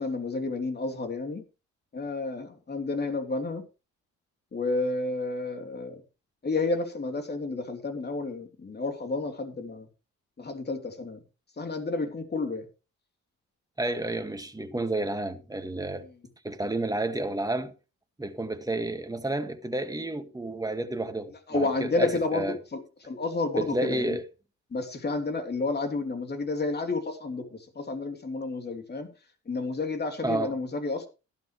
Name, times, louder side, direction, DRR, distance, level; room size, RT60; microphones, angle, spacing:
voice 1, 0.0-1.4 1.9-3.6 4.5-6.0 6.4-9.9 10.4-11.2 11.6-12.6 16.0-16.1 21.5-24.2 24.7-29.1 29.4-31.1, left 3 dB, 35° left, 3.3 m, -31 dB
voice 2, 13.8-16.1 16.4-17.7 18.2-22.6 23.5-24.2 30.2-30.5, right 2 dB, 10° right, 1.9 m, -31 dB
14.5 x 12.0 x 3.2 m
cardioid pair, 90°, 30 cm